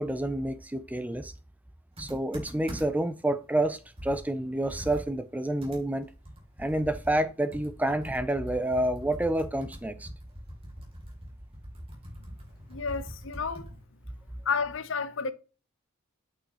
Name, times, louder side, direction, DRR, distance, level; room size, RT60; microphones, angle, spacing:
voice 1, 0.0-1.3 2.0-6.1 6.6-10.1, right 1 dB, 5° right, 0.4 m, -29 dB
Computer keyboard, 2.0-3.1 3.6-3.7 4.0-13.8, equal, 25° right, 2.6 m, -43 dB
voice 2, 12.7-13.8 14.4-15.3, left 5 dB, 55° left, 0.7 m, -31 dB
8.4 x 6.1 x 2.9 m
head